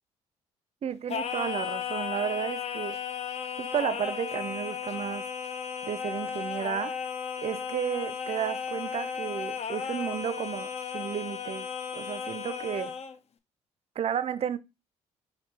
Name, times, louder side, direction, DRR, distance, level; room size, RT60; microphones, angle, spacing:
voice 1, 0.8-3.0 3.6-5.3 5.8-7.0 7.4-12.9 14.0-14.6, right 8 dB, 45° right, 0.5 m, -32 dB
Singing, 1.1-13.2, left 7 dB, 45° left, 0.5 m, -35 dB
5.0 x 2.6 x 3.3 m
hypercardioid pair, 55°, 15 cm